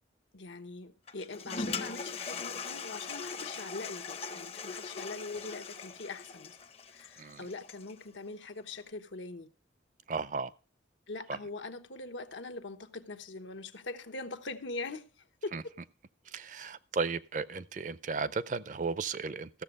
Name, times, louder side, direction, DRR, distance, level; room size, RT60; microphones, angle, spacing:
voice 1, 0.3-6.6 6.9-9.5 11.1-15.7, left 3 dB, 90° left, 1.1 m, -42 dB
Toilet flush, 1.1-8.0, left 4 dB, 35° left, 0.6 m, -40 dB
voice 2, 10.1-10.5 11.3-11.4 15.5-15.6 16.3-19.5, right 4 dB, 45° right, 0.5 m, -35 dB
14.5 x 7.0 x 5.4 m
head